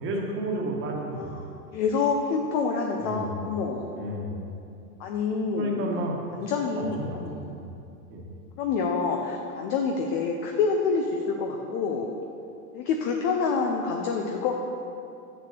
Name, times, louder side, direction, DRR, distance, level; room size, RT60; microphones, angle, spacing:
voice 1, 0.0-1.4 3.0-3.4 4.0-4.3 5.5-6.4 6.8-7.7 8.1-8.2, right 1 dB, 25° right, -1 dB, 1.4 m, -32 dB
voice 2, 1.1-1.5 1.7-3.9 5.0-5.8 6.3-7.4 8.6-12.1 12.7-14.5, left 5 dB, 25° left, 2 dB, 0.4 m, -27 dB
6.9 x 6.5 x 6.5 m, 2.6 s
hypercardioid pair, 135°, 46 cm